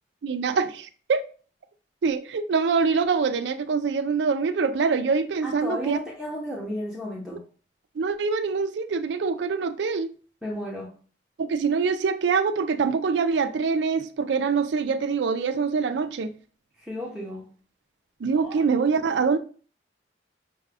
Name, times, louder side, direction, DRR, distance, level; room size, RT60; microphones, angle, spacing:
voice 1, 0.2-0.8 1.1-1.3 2.0-6.0 8.0-10.1 11.4-16.3 18.2-19.4, right 5 dB, 70° right, 0.4 m, -24 dB
voice 2, 5.4-7.4 10.4-11.0 16.8-17.5 18.4-18.6, equal, ahead, 0.7 m, -33 dB
5.7 x 2.2 x 3.4 m
head